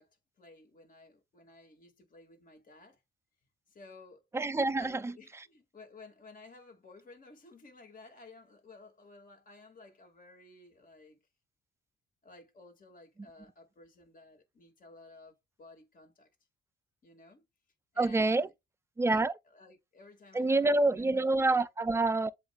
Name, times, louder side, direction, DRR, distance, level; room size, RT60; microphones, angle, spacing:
voice 1, 0.0-3.0 3.7-4.2 4.7-11.2 12.2-16.3 17.0-17.5 17.9-18.5 19.0-21.3 21.5-21.7, left 3 dB, 45° left, 2.1 m, -55 dB
voice 2, 4.3-5.1 18.0-18.5 19.0-19.3 20.3-22.3, right 2 dB, 15° right, 0.4 m, -27 dB
7.7 x 2.6 x 2.3 m
cardioid pair, 90°, 20 cm